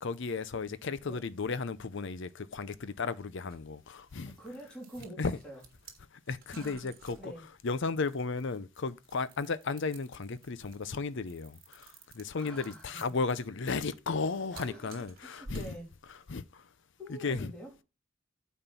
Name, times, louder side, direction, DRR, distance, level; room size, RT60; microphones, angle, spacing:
voice 1, 0.0-4.4 5.2-5.4 6.3-7.3 7.6-15.7 16.3-16.6 17.1-17.5, left 4 dB, 60° left, 0.6 m, -34 dB
sound 1, 3.5-16.4, right 3 dB, 45° right, 1.6 m, -54 dB
voice 2, 4.1-5.6 6.5-6.9 7.2-7.4 11.8-12.9 14.5-15.9 17.0-17.8, right 1 dB, 5° left, 3.0 m, -47 dB
8.9 x 4.4 x 5.4 m
head